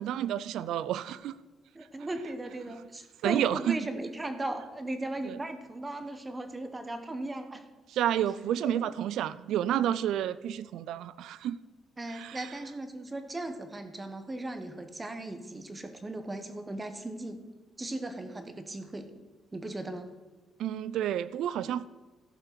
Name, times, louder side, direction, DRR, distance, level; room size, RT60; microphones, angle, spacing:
voice 1, 0.0-1.3 3.2-3.8 5.2-5.4 7.9-11.6 12.2-12.4 20.6-21.9, right 11 dB, 80° right, 17 dB, 0.4 m, -30 dB
voice 2, 1.7-7.6 8.7-8.8 12.0-17.4 17.8-19.1 19.5-20.1, right 2 dB, 20° right, 8 dB, 1.2 m, -37 dB
14.0 x 5.7 x 6.1 m, 1.2 s
cardioid pair, 90°, 0 cm